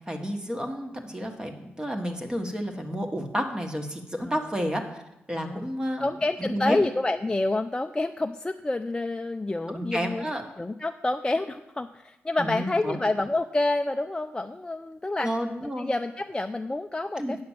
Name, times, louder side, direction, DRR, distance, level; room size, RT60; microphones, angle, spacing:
voice 1, 0.1-5.0 5.3-6.1 6.4-6.8 9.7-10.4 12.4-13.0 15.2-15.9 17.2-17.4, equal, 20° right, 4 dB, 1.5 m, -31 dB
voice 2, 5.4-5.7 6.0-10.2 10.6-15.3 15.8-17.4, left 2 dB, 20° left, 5 dB, 0.4 m, -28 dB
8.6 x 5.8 x 7.3 m, 0.92 s
cardioid pair, 70°, 4 cm